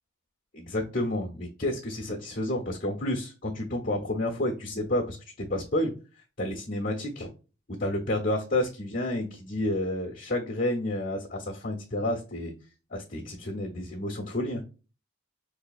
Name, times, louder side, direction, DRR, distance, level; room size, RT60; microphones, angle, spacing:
voice 1, 0.5-5.2 5.5-5.9 6.4-7.3 7.8-12.5 12.9-14.6, left 1 dB, 45° left, 0 dB, 0.9 m, -30 dB
4.8 x 2.7 x 2.4 m, 0.34 s
head